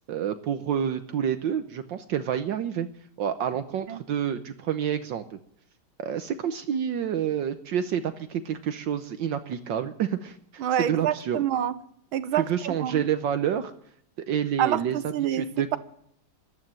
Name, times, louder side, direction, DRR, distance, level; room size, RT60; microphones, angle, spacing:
voice 1, 0.1-2.9 3.2-5.4 6.0-11.4 12.4-13.7 14.3-15.0 15.3-15.8, right 9 dB, 70° right, 1.5 m, -28 dB
voice 2, 10.6-11.7 12.1-13.0 14.6-15.8, right 10 dB, 90° right, 1.7 m, -27 dB
14.0 x 12.0 x 7.6 m
omnidirectional pair, 2.2 m